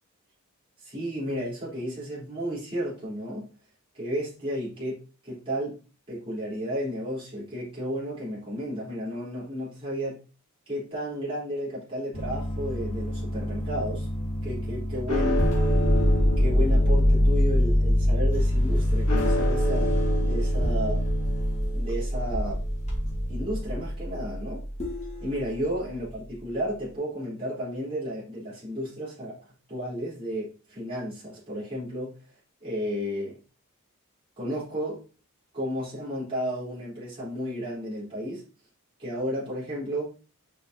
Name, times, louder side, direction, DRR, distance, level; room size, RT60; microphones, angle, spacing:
voice 1, 0.8-3.5 3.9-5.8 6.1-10.2 10.7-14.1 14.4-15.5 16.4-21.0 21.7-22.6 23.3-24.6 25.2-29.4 29.7-32.2 32.6-33.4 34.4-35.0 35.5-38.4 39.0-40.1, equal, 25° right, -9 dB, 3.9 m, -33 dB
sound 1, 12.1-23.9 24.8-25.1, left 1 dB, 30° left, 2.0 m, -26 dB
sound 2, 15.1-25.5, equal, 90° left, 2.3 m, -27 dB
6.9 x 5.4 x 2.9 m, 0.33 s
head